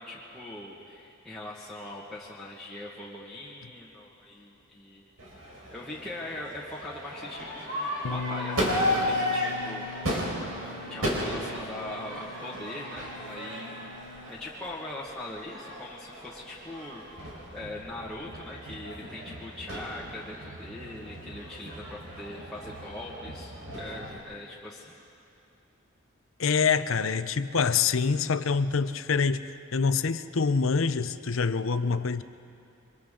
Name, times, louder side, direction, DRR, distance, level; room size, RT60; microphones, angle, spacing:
voice 1, 0.0-5.1 5.7-9.9 10.9-14.0 14.3-17.0 17.5-25.0, left 2 dB, 5° left, -8 dB, 1.7 m, -41 dB
Crowd / Fireworks, 5.2-24.2, equal, 85° right, 4.4 m, -35 dB
Bass guitar, 8.0-14.3, left 4 dB, 85° left, 1.0 m, -41 dB
voice 2, 26.4-32.2, left 5 dB, 65° left, 12 dB, 0.7 m, -26 dB
28.5 x 24.5 x 3.8 m, 2.7 s
head